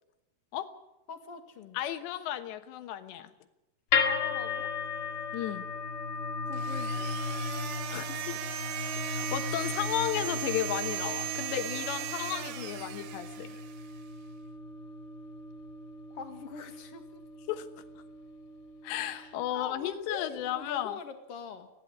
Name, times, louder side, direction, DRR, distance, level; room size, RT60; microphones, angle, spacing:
voice 1, 1.1-1.8 4.0-4.7 6.5-7.2 7.5-7.9 16.1-17.2 19.0-21.7, left 6 dB, 50° left, 7 dB, 1.9 m, -43 dB
voice 2, 1.7-3.3 5.3-5.7 7.9-8.4 8.8-13.5 17.5-17.7 18.8-21.0, left 12 dB, 85° left, 9 dB, 3.4 m, -34 dB
sound 1, 3.9-20.1, left 4 dB, 70° left, 3.6 m, -36 dB
sound 2, 6.5-13.9, right 11 dB, 75° right, 3.3 m, -38 dB
28.5 x 10.5 x 9.6 m, 0.94 s
omnidirectional pair, 4.9 m